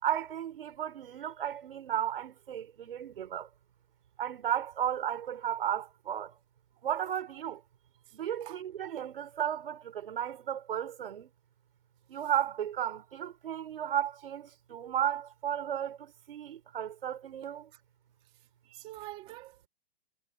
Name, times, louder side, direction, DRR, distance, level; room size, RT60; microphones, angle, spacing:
voice 1, 0.0-3.5 4.2-6.3 6.8-7.6 8.1-11.3 12.1-17.7, right 10 dB, 60° right, 4.7 m, -34 dB
voice 2, 18.7-19.7, right 16 dB, 15° right, 2.6 m, -46 dB
hypercardioid pair, 175°, 33 cm